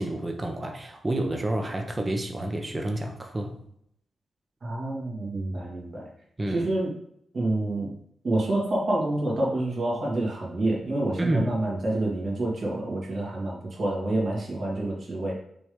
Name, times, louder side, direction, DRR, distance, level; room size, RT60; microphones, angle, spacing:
voice 1, 0.0-3.5 6.4-6.7 11.2-11.5, right 1 dB, 25° right, 3 dB, 1.1 m, -29 dB
voice 2, 4.6-6.1 6.5-6.9 7.3-7.9 8.2-15.3, right 1 dB, 55° right, -4 dB, 2.5 m, -28 dB
6.0 x 3.5 x 5.5 m, 0.71 s
cardioid pair, 65°, 0 cm